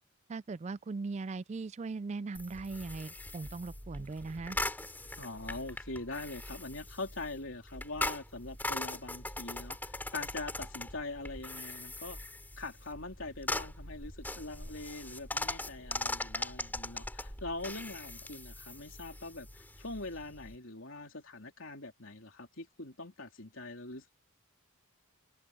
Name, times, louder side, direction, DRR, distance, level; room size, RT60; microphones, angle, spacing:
voice 1, 0.3-4.6, right 3 dB, 30° right, 0.3 m, -39 dB
sound 1, 2.3-20.6, left 2 dB, 10° left, 2.8 m, -41 dB
voice 2, 5.2-12.2 12.6-19.5 19.8-24.2, left 2 dB, 60° left, 3.6 m, -43 dB
head